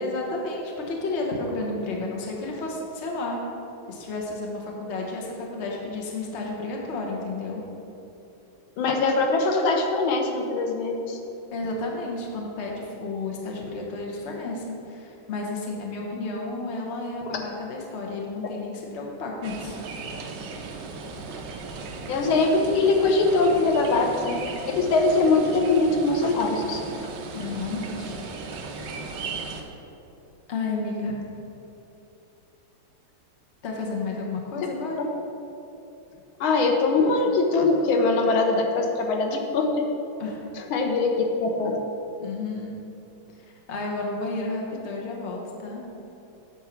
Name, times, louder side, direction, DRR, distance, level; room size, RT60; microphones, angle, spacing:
voice 1, 0.0-3.4 3.9-7.6 11.5-19.8 27.3-28.2 29.2-29.3 30.5-31.1 33.6-35.0 40.2-40.4 42.2-42.7 43.7-45.8, left 3 dB, 40° left, -1 dB, 1.1 m, -32 dB
voice 2, 8.8-11.2 17.3-17.4 22.1-24.3 24.7-27.0 36.4-39.7 40.6-41.1 41.4-41.8, left 3 dB, 85° left, 2 dB, 1.6 m, -22 dB
sound 1, 19.4-29.6, right 4 dB, 70° right, 1.3 m, -37 dB
8.1 x 4.5 x 5.8 m, 2.9 s
omnidirectional pair, 2.2 m